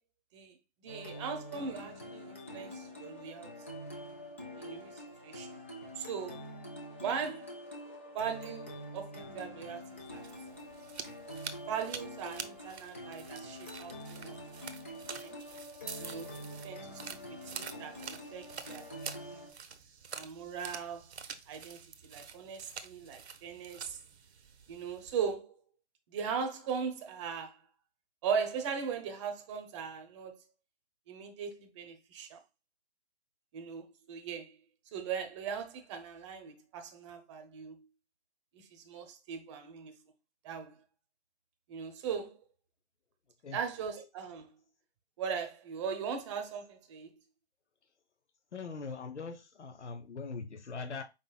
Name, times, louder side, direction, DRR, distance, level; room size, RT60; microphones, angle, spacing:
voice 1, 0.3-3.5 4.6-5.6 6.0-6.4 7.0-7.6 8.1-9.8 10.1-10.2 11.7-14.7 15.2-15.4 16.0-17.0 17.3-19.5 20.1-21.1 21.5-24.0 24.7-25.6 26.1-27.6 28.2-30.4 31.1-32.4 33.5-34.6 34.9-37.8 38.5-39.9 40.4-40.8 41.7-42.4 43.5-44.5 45.2-47.1, right 6 dB, 25° right, 0.8 m, -39 dB
sound 1, 0.9-19.5, left 1 dB, 10° left, 0.4 m, -46 dB
sound 2, 9.9-25.1, right 6 dB, 70° right, 0.8 m, -47 dB
voice 2, 48.5-51.0, left 4 dB, 80° left, 0.9 m, -41 dB
5.3 x 4.2 x 2.3 m
figure-of-eight pair, 140°, 34 cm